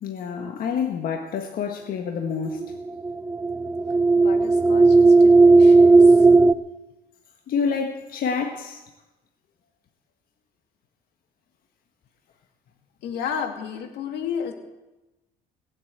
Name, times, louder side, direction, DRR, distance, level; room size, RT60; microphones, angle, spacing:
voice 1, 0.0-2.7 7.5-8.8, left 6 dB, 60° left, 3 dB, 1.5 m, -28 dB
sound 1, 2.6-6.5, right 3 dB, 15° right, 0.7 m, -14 dB
voice 2, 4.2-6.3 13.0-14.5, left 7 dB, 80° left, 5 dB, 2.3 m, -32 dB
19.5 x 8.2 x 8.1 m, 1.0 s
cardioid pair, 110°, 17 cm